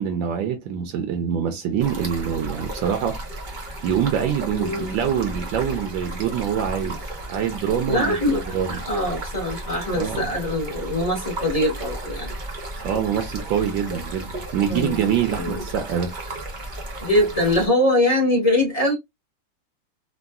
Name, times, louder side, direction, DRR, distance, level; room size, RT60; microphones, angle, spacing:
voice 1, 0.0-3.2 3.8-7.0 7.3-8.2 8.5-8.8 9.9-10.3 12.8-16.1, right 8 dB, 80° right, 1.3 m, -25 dB
Stream, 1.8-17.7, right 1 dB, 60° right, 0.4 m, -34 dB
voice 2, 4.5-4.9 7.9-8.4 8.9-12.3 14.7-15.0 15.3-15.6 17.0-18.9, left 1 dB, 30° left, 0.7 m, -22 dB
3.6 x 2.2 x 2.3 m
omnidirectional pair, 2.2 m